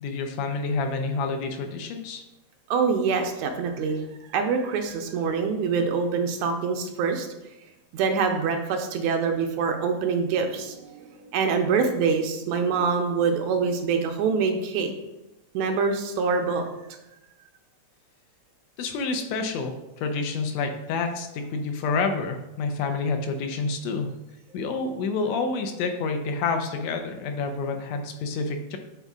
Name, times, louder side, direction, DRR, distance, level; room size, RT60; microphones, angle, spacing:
voice 1, 0.0-2.2 18.8-24.1 24.5-28.8, left 4 dB, 75° left, 5 dB, 1.7 m, -28 dB
voice 2, 2.7-4.0 4.3-7.3 7.9-14.9 15.5-16.7, right 5 dB, 85° right, 5 dB, 2.0 m, -25 dB
8.2 x 4.0 x 3.6 m, 0.96 s
omnidirectional pair, 3.3 m